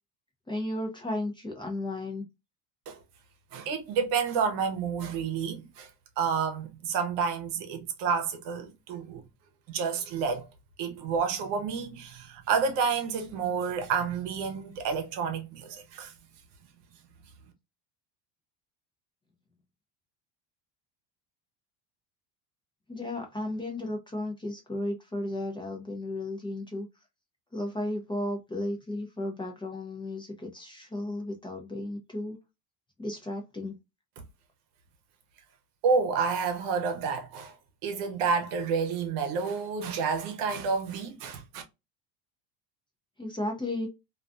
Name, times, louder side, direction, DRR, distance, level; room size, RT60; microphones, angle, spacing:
voice 1, 0.5-2.2 22.9-26.9 27.5-32.4 33.0-33.8 43.2-43.9, left 1 dB, 10° left, 0.6 m, -34 dB
voice 2, 3.5-5.9 6.2-9.2 9.7-10.4 10.8-16.1 35.8-37.5 37.8-41.6, right 5 dB, 70° right, 0.9 m, -29 dB
2.5 x 2.3 x 2.5 m
supercardioid pair, 120°, 43 cm